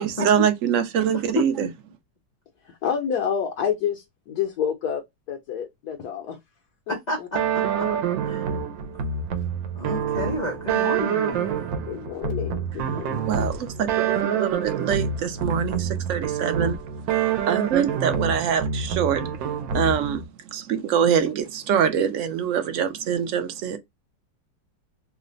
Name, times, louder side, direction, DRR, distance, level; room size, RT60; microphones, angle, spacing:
voice 1, 0.0-1.7 13.3-16.8 17.5-19.2 19.7-20.2 20.5-23.8, right 8 dB, 65° right, 0.8 m, -24 dB
voice 2, 1.1-1.7 6.9-7.9 8.2-8.6 9.7-11.7, left 1 dB, 85° left, 0.3 m, -30 dB
voice 3, 2.6-6.4 6.9-7.3 11.9-13.3 19.0-19.1, left 8 dB, 70° left, 1.0 m, -29 dB
sound 1, 7.3-20.2, right 7 dB, 85° right, 1.3 m, -27 dB
3.2 x 2.1 x 3.8 m
omnidirectional pair, 2.0 m